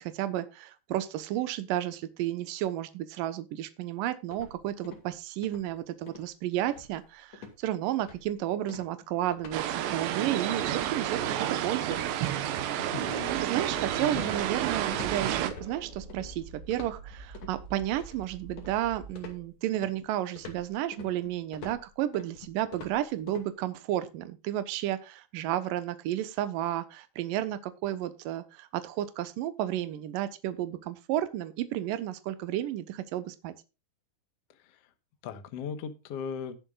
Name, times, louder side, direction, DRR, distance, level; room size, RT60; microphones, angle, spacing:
voice 1, 0.0-11.2 11.6-12.0 13.4-33.5, right 13 dB, 70° right, 11 dB, 2.4 m, -32 dB
sound 1, 4.3-5.1 5.4-5.7 6.1-6.3 6.7-7.1 7.3-7.6 8.0-8.3 8.7-9.6 9.9-10.2 10.6-15.2 15.5-16.3 16.7-17.6 18.0-18.8 19.2-23.5, left 5 dB, 45° left, 3.0 m, -47 dB
sound 2, 9.5-15.5, right 11 dB, 90° right, 3.4 m, -30 dB
voice 2, 12.9-13.3 14.0-14.4 34.6-34.8 35.2-36.6, left 6 dB, 85° left, 10 dB, 1.3 m, -38 dB
sound 3, 13.8-19.2, right 3 dB, 25° right, 2.9 m, -46 dB
19.0 x 7.1 x 2.5 m, 0.29 s
omnidirectional pair, 4.9 m